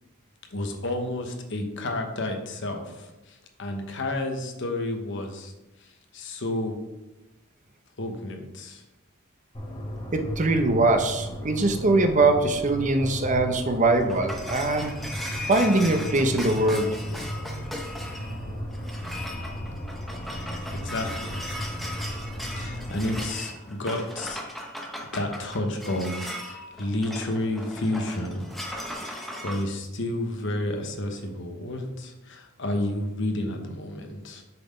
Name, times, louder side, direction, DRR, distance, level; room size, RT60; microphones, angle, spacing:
voice 1, 0.5-5.5 5.8-6.8 8.0-8.8 20.3-21.4 22.6-24.4 25.1-28.4 29.0-34.4, left 1 dB, 60° left, 4 dB, 1.0 m, -31 dB
sound 1, 9.5-23.3, equal, 25° left, 1.1 m, -35 dB
voice 2, 10.1-14.9 15.5-16.9, right 2 dB, 35° right, 6 dB, 0.7 m, -22 dB
sound 2, 13.9-29.6, left 1 dB, ahead, 0.8 m, -37 dB
6.8 x 4.1 x 5.3 m, 0.98 s
head